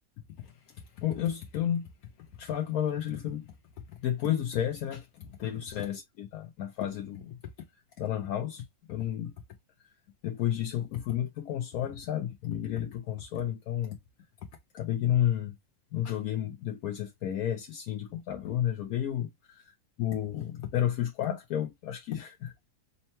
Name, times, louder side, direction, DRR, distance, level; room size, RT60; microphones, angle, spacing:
voice 1, 1.0-1.9 2.4-3.5 3.9-7.4 8.0-9.3 10.2-14.0 14.7-15.5 15.9-19.3 20.0-22.7, left 11 dB, 75° left, 1.1 m, -31 dB
5.4 x 2.1 x 2.7 m
omnidirectional pair, 1.6 m